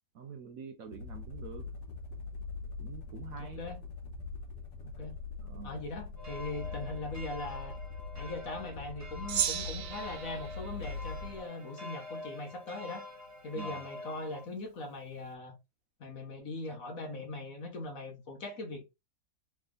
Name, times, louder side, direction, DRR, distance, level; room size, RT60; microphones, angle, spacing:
voice 1, 0.1-1.7 2.8-3.6 5.4-5.8 13.5-13.8, right 6 dB, 65° right, 0.9 m, -46 dB
sound 1, 0.8-11.5, left 4 dB, 85° left, 1.6 m, -43 dB
voice 2, 3.4-3.8 4.8-5.2 5.6-7.8 8.2-13.0 13.4-15.6 16.0-18.8, left 2 dB, 55° left, 1.4 m, -40 dB
sound 2, 6.2-14.5, left 2 dB, 10° right, 0.8 m, -46 dB
Gong, 9.3-11.9, right 9 dB, 90° right, 1.4 m, -36 dB
3.6 x 3.2 x 3.7 m
omnidirectional pair, 1.8 m